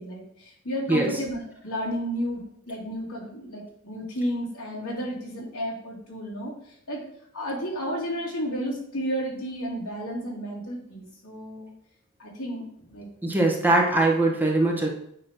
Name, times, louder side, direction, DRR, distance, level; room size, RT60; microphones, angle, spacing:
voice 1, 0.0-2.4 2.7-6.5 6.9-7.0 7.3-11.7 12.2-13.1, equal, 85° left, -5 dB, 2.9 m, -32 dB
voice 2, 13.2-14.9, right 2 dB, 10° right, -1 dB, 1.2 m, -21 dB
8.9 x 3.2 x 5.9 m, 0.70 s
head